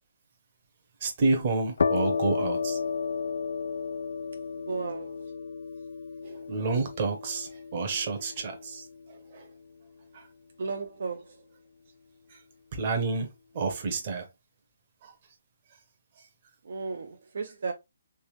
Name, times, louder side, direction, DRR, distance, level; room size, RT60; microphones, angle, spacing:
voice 1, 1.0-2.8 6.2-9.5 10.1-10.3 12.3-12.4 12.7-13.3 13.5-14.3 15.0-15.1 16.2-16.3, right 3 dB, 25° right, 0.8 m, -30 dB
sound 1, 1.8-9.3, left 5 dB, 60° left, 0.3 m, -33 dB
voice 2, 4.7-5.1 10.6-11.3 16.7-17.7, right 4 dB, 50° right, 0.5 m, -34 dB
3.4 x 3.1 x 3.1 m
hypercardioid pair, 180°, 0 cm